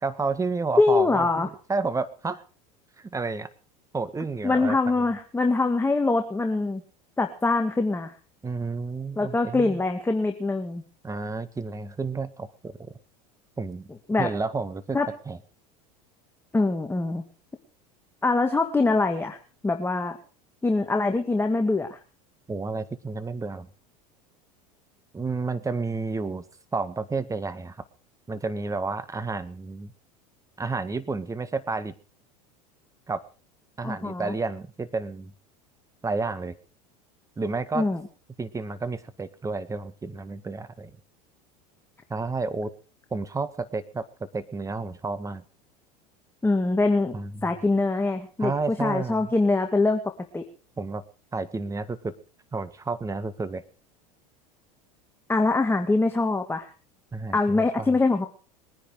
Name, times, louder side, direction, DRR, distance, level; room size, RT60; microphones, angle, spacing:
voice 1, 0.0-2.4 3.0-3.5 3.9-4.8 8.4-9.8 11.0-12.9 13.6-13.9 14.2-15.0 15.3-15.4 22.5-23.7 25.1-26.4 26.7-27.8 28.3-29.9 30.6-31.9 33.1-33.2 33.8-35.3 36.0-36.6 37.4-37.9 38.4-40.9 42.1-42.7 43.1-44.1 44.3-45.4 47.1-47.5 48.4-49.3 50.8-51.0 51.3-52.1 52.5-53.6 57.1-57.9, right 3 dB, 15° right, 13 dB, 1.8 m, -31 dB
voice 2, 0.8-1.5 4.4-6.8 7.2-8.1 9.2-10.8 14.1-14.3 14.9-15.1 16.5-17.2 18.2-19.4 19.6-20.2 20.6-22.0 33.8-34.3 37.7-38.0 46.4-47.2 47.4-50.0 50.3-50.4 55.3-56.7 57.3-58.3, left 3 dB, 10° left, 4 dB, 2.0 m, -23 dB
22.0 x 10.0 x 4.9 m, 0.37 s
hypercardioid pair, 95°, 20 cm